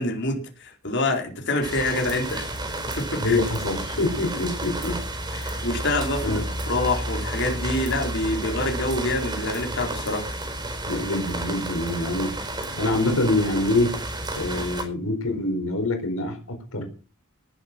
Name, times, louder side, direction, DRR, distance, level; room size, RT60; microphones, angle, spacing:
voice 1, 0.0-2.6 3.0-3.4 5.6-6.4 6.7-10.3, left 2 dB, 55° left, 2 dB, 4.4 m, -26 dB
sound 1, 1.6-14.8, right 1 dB, 20° right, 4.6 m, -31 dB
voice 2, 3.2-5.0 5.3-5.6 6.2-6.5 10.9-12.3 12.7-14.0 14.3-16.8, left 2 dB, 80° left, 5 dB, 4.3 m, -25 dB
19.0 x 7.9 x 6.2 m, 0.36 s
head